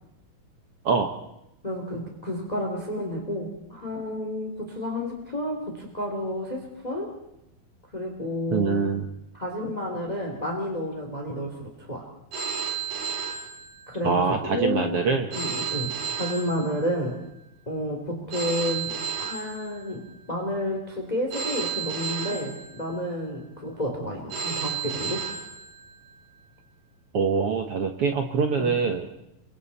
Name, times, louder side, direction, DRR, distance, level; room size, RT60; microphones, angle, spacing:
voice 1, 1.6-7.1 7.9-8.8 9.3-12.0 13.9-14.8 15.3-15.9 16.2-17.2 17.7-20.0 20.3-25.2 28.6-28.7, equal, 10° left, 1 dB, 2.7 m, -30 dB
voice 2, 8.5-9.1 14.0-15.3 27.1-29.1, right 5 dB, 60° right, 4 dB, 1.6 m, -24 dB
Telephone, 12.3-14.2 15.3-17.2 18.3-20.2 21.3-23.2 24.3-26.2, right 7 dB, 45° right, 4.3 m, -33 dB
29.5 x 23.5 x 4.2 m, 0.85 s
omnidirectional pair, 4.2 m